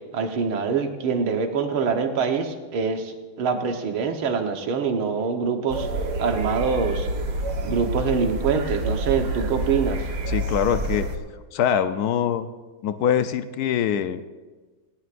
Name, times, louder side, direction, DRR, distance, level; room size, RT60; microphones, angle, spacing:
voice 1, 0.1-5.9 6.2-7.1 7.6-10.1, right 5 dB, 80° right, 4 dB, 2.1 m, -25 dB
sound 1, 5.7-11.2, right 2 dB, 55° right, 1.7 m, -28 dB
voice 2, 10.3-11.1 11.5-12.5 12.8-14.2, left 9 dB, 75° left, 10 dB, 0.9 m, -23 dB
19.0 x 19.0 x 2.5 m, 1.3 s
omnidirectional pair, 2.3 m